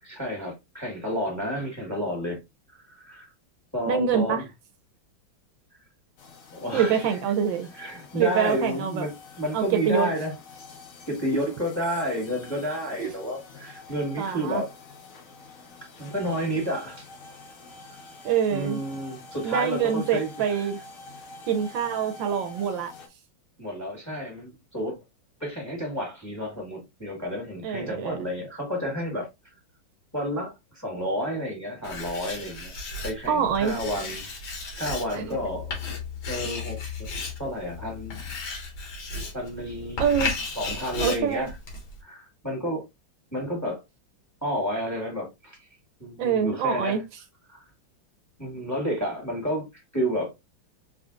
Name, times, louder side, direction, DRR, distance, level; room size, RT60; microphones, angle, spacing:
voice 1, 0.0-2.4 2.7-3.3 3.7-4.5 6.5-7.2 7.7-10.3 11.1-14.7 16.0-17.1 18.5-20.7 23.6-25.0 25.4-29.3 30.1-32.7 33.0-34.3 34.7-35.8 36.3-37.1 37.4-38.2 39.3-40.0 40.6-41.5 42.0-42.8 43.3-43.8 44.4-45.7 46.0-47.0 47.5-47.6 48.4-49.7 49.9-50.3, equal, 10° left, 1.5 m, -31 dB
voice 2, 3.9-4.4 6.7-7.7 8.1-9.1 9.5-10.1 13.0-13.1 14.2-14.6 18.2-18.8 19.4-20.8 21.5-22.9 27.6-28.2 33.3-33.8 35.1-35.4 40.0-40.3 41.0-41.5 46.2-47.0, right 7 dB, 75° right, 1.3 m, -25 dB
sound 1, 6.2-23.1, left 3 dB, 50° left, 1.1 m, -47 dB
Writing, 31.8-42.0, left 3 dB, 90° left, 2.2 m, -35 dB
4.7 x 3.7 x 2.4 m
omnidirectional pair, 2.2 m